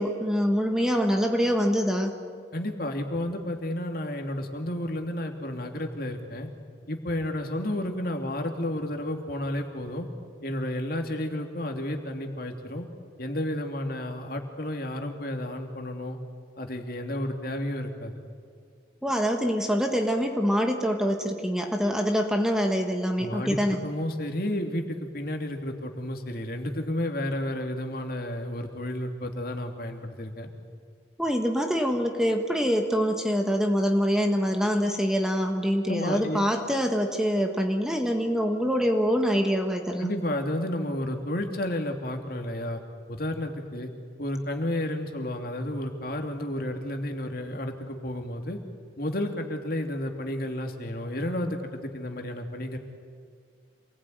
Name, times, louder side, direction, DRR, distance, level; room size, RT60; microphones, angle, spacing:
voice 1, 0.0-2.1 19.0-23.8 31.2-40.1, equal, 5° right, 3 dB, 1.5 m, -25 dB
voice 2, 2.5-6.5 6.9-10.1 10.4-12.9 13.2-16.2 16.6-18.2 23.2-30.5 35.9-36.4 40.0-42.8 43.1-43.9 44.2-48.6 49.0-52.8, left 1 dB, 50° left, 3 dB, 2.7 m, -31 dB
27.5 x 20.0 x 9.4 m, 2.1 s
head